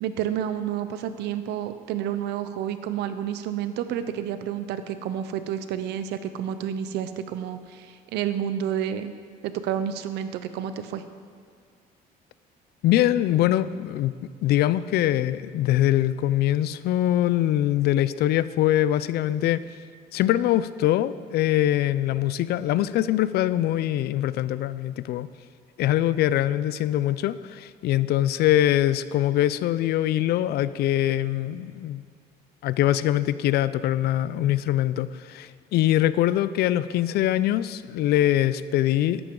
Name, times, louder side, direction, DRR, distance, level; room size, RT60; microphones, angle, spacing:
voice 1, 0.0-9.1 9.4-11.0, right 9 dB, 85° right, 11 dB, 0.8 m, -30 dB
voice 2, 12.8-14.1 14.4-19.6 20.1-25.3 25.8-32.0 32.6-39.2, left 13 dB, 70° left, 16 dB, 0.4 m, -23 dB
13.5 x 11.0 x 3.8 m, 2.1 s
cardioid pair, 110°, 17 cm